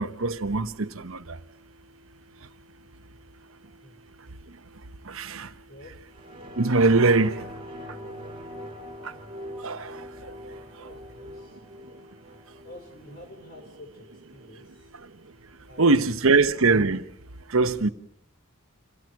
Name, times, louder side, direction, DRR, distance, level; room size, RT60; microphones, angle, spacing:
voice 1, 0.0-1.4 5.1-5.5 6.6-7.3 9.6-10.0 10.2-10.3 15.8-17.0 17.5-17.9, right 3 dB, 70° right, 1.0 m, -22 dB
voice 2, 3.6-4.0 5.7-6.0 7.0-7.5 10.8-11.7 11.9-12.1 12.6-14.9 15.7-16.2, left 1 dB, 45° left, 4.9 m, -49 dB
sound 1, 6.1-15.1 15.5-15.6, equal, 25° right, 2.3 m, -43 dB
27.0 x 17.0 x 6.3 m
head